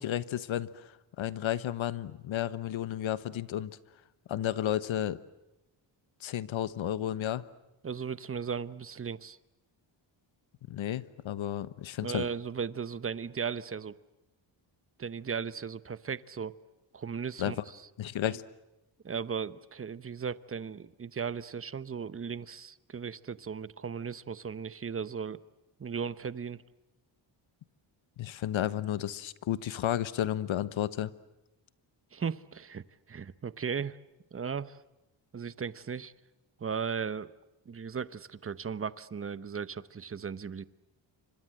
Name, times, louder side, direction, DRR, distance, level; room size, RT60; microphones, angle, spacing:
voice 1, 0.0-3.8 4.3-5.2 6.2-7.5 10.7-12.3 17.4-17.5 18.0-18.4 28.2-31.1, left 11 dB, 75° left, 16 dB, 1.2 m, -32 dB
voice 2, 7.8-9.4 12.0-14.0 15.0-16.5 16.9-17.9 19.0-25.4 25.8-26.6 32.1-34.0 34.3-34.8 35.3-36.1 36.6-37.3 37.7-40.6, right 6 dB, 30° right, 16 dB, 0.9 m, -36 dB
28.5 x 25.5 x 7.7 m, 0.95 s
cardioid pair, 115°, 47 cm